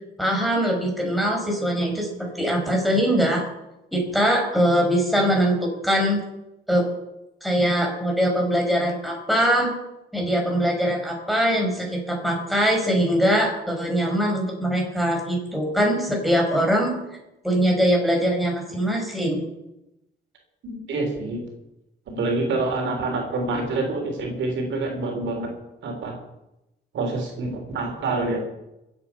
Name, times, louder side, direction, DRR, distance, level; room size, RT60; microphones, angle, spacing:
voice 1, 0.2-3.4 3.9-6.2 6.7-6.9 7.4-9.7 10.1-16.9 17.4-19.4, equal, ahead, 0 dB, 5.6 m, -22 dB
voice 2, 20.6-21.4 22.1-25.5 25.8-26.2 26.9-28.4, right 3 dB, 70° right, 2 dB, 3.5 m, -27 dB
23.0 x 8.3 x 5.7 m, 0.93 s
cardioid pair, 90°, 20 cm